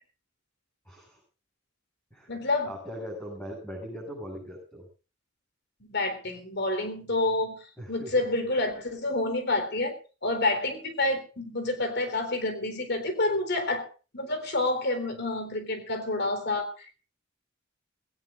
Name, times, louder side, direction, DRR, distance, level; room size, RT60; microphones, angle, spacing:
voice 1, 0.8-1.2 2.1-4.9 7.8-8.2, equal, 15° left, -4 dB, 7.6 m, -40 dB
voice 2, 2.3-2.7 5.9-7.6 7.9-9.9 10.2-13.9 14.1-16.8, left 2 dB, 60° left, 8 dB, 3.8 m, -28 dB
20.0 x 18.0 x 2.5 m, 0.34 s
head